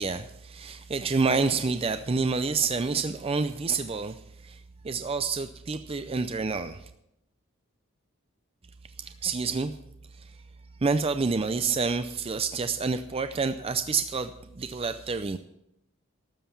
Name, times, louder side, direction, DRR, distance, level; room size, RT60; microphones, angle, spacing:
voice 1, 0.0-4.2 4.4-4.6 4.8-6.8 9.0-9.7 10.2-10.3 10.8-15.4, right 4 dB, 30° right, 10 dB, 0.5 m, -28 dB
12.5 x 7.6 x 7.0 m, 0.80 s
head